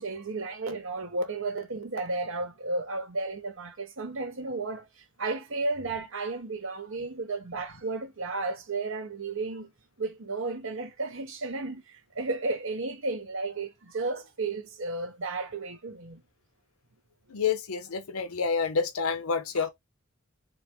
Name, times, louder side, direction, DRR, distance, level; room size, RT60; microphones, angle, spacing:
voice 1, 0.0-9.7 10.0-16.2 19.6-19.7, right 3 dB, 65° right, 1.0 m, -33 dB
voice 2, 17.3-19.7, left 5 dB, 80° left, 0.6 m, -28 dB
4.0 x 2.0 x 3.3 m
head